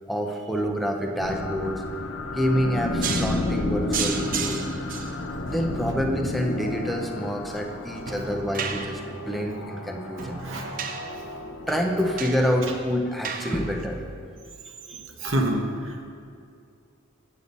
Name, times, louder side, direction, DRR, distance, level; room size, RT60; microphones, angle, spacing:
voice 1, 0.1-1.8 2.3-4.6 5.4-10.4 11.2-11.3 11.6-14.0 14.9-15.0, equal, ahead, 2 dB, 0.6 m, -27 dB
sound 1, 1.2-13.2, left 2 dB, 60° left, 0.7 m, -32 dB
sound 2, 3.0-14.3, right 6 dB, 40° right, 0.5 m, -35 dB
voice 2, 10.4-10.8 13.5-13.6 14.9-16.0, right 1 dB, 65° right, 1 dB, 1.1 m, -28 dB
8.4 x 8.4 x 4.0 m, 2.4 s
head